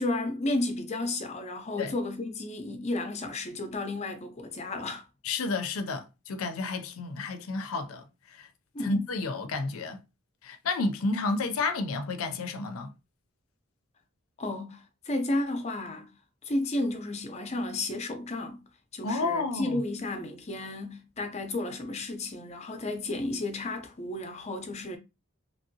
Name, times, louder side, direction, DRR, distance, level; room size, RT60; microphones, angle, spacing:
voice 1, 0.0-5.0 8.7-9.1 14.4-16.1 16.5-18.6 18.9-25.0, left 2 dB, 30° left, 0.5 m, -32 dB
voice 2, 5.2-8.0 8.4-8.5 8.8-10.0 10.4-12.9 19.0-19.8, left 3 dB, 80° left, 0.4 m, -31 dB
3.0 x 2.6 x 2.6 m
head